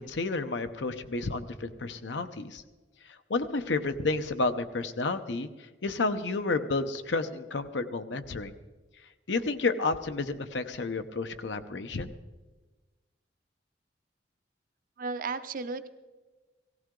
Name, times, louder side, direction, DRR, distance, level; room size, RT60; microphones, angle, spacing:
voice 1, 0.0-2.6 3.1-8.5 9.3-12.1, left 3 dB, 80° left, 9 dB, 0.8 m, -31 dB
voice 2, 15.0-15.9, right 4 dB, 50° right, 10 dB, 0.7 m, -34 dB
17.5 x 15.5 x 3.8 m, 1.2 s
head